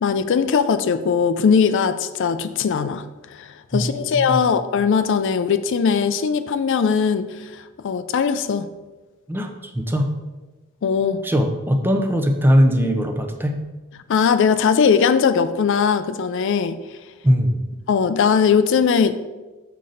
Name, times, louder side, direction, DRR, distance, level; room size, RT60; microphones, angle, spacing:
voice 1, 0.0-8.7 10.8-11.2 14.1-16.8 17.9-19.1, left 6 dB, 60° left, 11 dB, 0.4 m, -20 dB
voice 2, 3.7-4.5 9.3-10.1 11.2-13.6 17.2-17.6, equal, 10° right, 5 dB, 0.6 m, -20 dB
6.4 x 5.7 x 4.0 m, 1.2 s
head